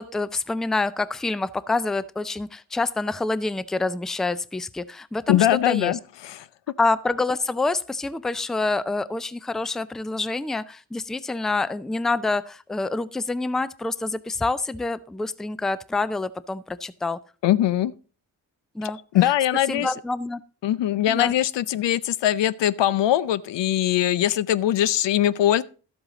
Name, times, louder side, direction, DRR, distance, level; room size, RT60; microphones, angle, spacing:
voice 1, 0.0-6.0 6.8-17.2 18.7-19.0 19.2-19.3 19.7-20.4 21.1-21.3, left 3 dB, ahead, 0.4 m, -27 dB
voice 2, 5.3-6.5 17.4-17.9 19.1-19.9 20.6-25.6, left 12 dB, 80° left, 0.6 m, -21 dB
12.0 x 7.9 x 3.8 m
cardioid pair, 60°, 43 cm